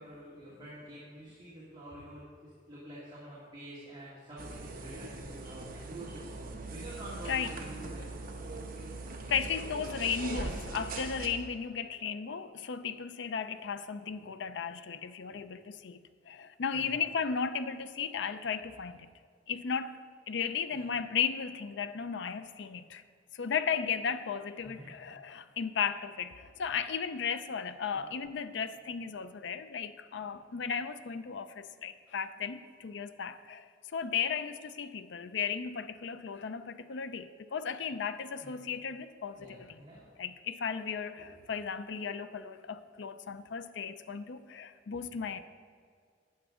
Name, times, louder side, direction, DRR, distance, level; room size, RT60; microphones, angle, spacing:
voice 1, 0.0-6.3 6.7-9.3 9.7-9.8 15.3-15.4 16.7-16.9 20.7-20.8 24.6-24.9 27.9-28.0 38.4-38.5 39.3-40.1, right 1 dB, 25° right, -8 dB, 2.0 m, -48 dB
sound 1, 4.4-11.3, right 2 dB, 50° right, 1.0 m, -41 dB
voice 2, 9.3-16.0 16.3-19.1 19.5-23.0 23.3-39.8 40.2-45.4, left 6 dB, 70° left, 12 dB, 0.5 m, -35 dB
12.0 x 9.1 x 3.7 m, 2.1 s
head